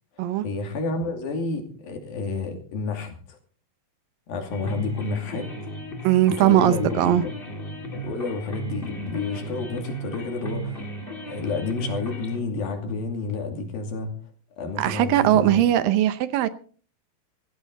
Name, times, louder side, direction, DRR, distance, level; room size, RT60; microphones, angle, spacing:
voice 1, 0.2-3.4 4.3-5.5 6.3-7.3 7.9-10.9 11.3-14.1 14.6-15.6, left 4 dB, 75° left, 4.4 m, -30 dB
sound 1, 4.5-12.4, right 3 dB, 20° left, 1.8 m, -36 dB
voice 2, 6.0-7.2 14.8-16.5, right 12 dB, 75° right, 2.4 m, -20 dB
18.0 x 15.0 x 4.0 m
omnidirectional pair, 4.2 m